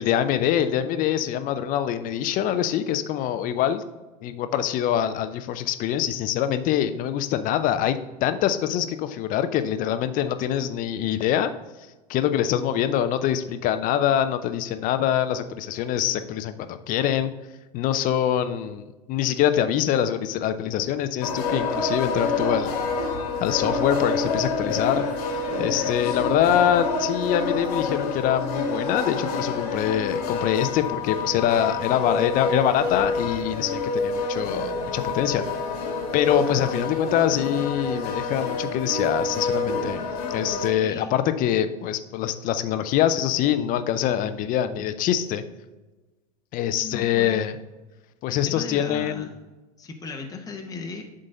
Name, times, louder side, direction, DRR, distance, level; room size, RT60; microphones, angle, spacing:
voice 1, 0.0-3.8 4.2-11.5 12.1-17.3 17.7-22.7 23.4-25.0 25.6-35.4 36.1-40.0 40.3-45.4 46.5-47.6 48.2-49.3, left 10 dB, 45° left, 11 dB, 0.6 m, -24 dB
sound 1, 21.2-40.7, left 3 dB, 70° left, 1.4 m, -28 dB
voice 2, 40.8-41.2 46.7-47.5 48.3-49.4 49.8-51.0, left 4 dB, 15° left, 2 dB, 0.9 m, -37 dB
7.4 x 3.9 x 5.4 m, 1.2 s
hypercardioid pair, 90°, 20 cm